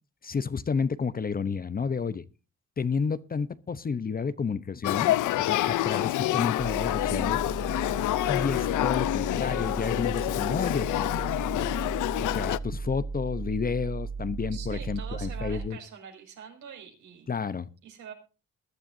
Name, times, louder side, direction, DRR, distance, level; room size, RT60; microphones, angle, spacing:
voice 1, 0.2-2.2 2.8-7.4 8.3-11.1 11.5-11.7 12.2-15.8 17.3-17.7, left 5 dB, 30° left, 15 dB, 0.8 m, -31 dB
Male speech man speaking / Child speech kid speaking / Conversation, 4.8-12.6, left 15 dB, 80° left, 0.6 m, -27 dB
sound 1, 6.6-15.7, right 4 dB, 30° right, 3.7 m, -36 dB
voice 2, 14.5-17.3 17.8-18.1, right 7 dB, 80° right, 3 dB, 5.8 m, -44 dB
21.5 x 11.5 x 2.7 m, 0.32 s
cardioid pair, 90°, 30 cm